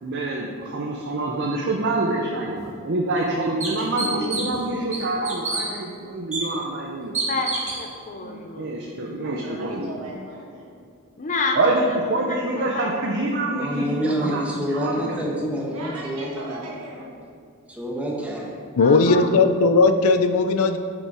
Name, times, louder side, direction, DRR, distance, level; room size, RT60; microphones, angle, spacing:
voice 1, 0.0-7.1 8.6-9.9 11.6-14.4 14.7-15.3, right 2 dB, 55° right, -1 dB, 0.7 m, -26 dB
sound 1, 2.6-2.7 3.2-3.3 3.6-4.6 4.9-5.6 6.3-6.4 7.1-7.8, right 3 dB, 35° right, 1.8 m, -28 dB
voice 2, 3.8-4.6 7.2-8.7 11.2-11.7 12.2-13.2 18.8-19.4 20.6-20.8, left 3 dB, 35° left, 4 dB, 0.6 m, -30 dB
voice 3, 9.2-10.8 11.7-12.3 12.9-13.2 15.7-17.1, right 2 dB, 80° right, -4 dB, 1.4 m, -38 dB
voice 4, 13.5-16.6 17.7-18.6, equal, 5° right, -3 dB, 1.2 m, -27 dB
voice 5, 18.8-20.8, left 3 dB, 80° left, 9 dB, 0.5 m, -17 dB
7.9 x 5.3 x 4.9 m, 2.4 s
head